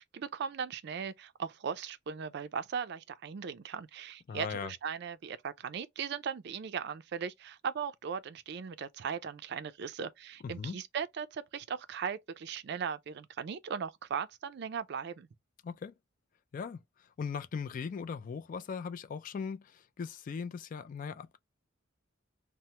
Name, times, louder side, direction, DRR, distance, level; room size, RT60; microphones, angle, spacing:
voice 1, 0.0-15.3, right 7 dB, 55° right, 0.4 m, -38 dB
voice 2, 4.3-4.7 10.4-10.8 15.6-15.9 16.5-16.8 17.2-21.4, left 6 dB, 45° left, 0.3 m, -39 dB
2.8 x 2.0 x 3.1 m
head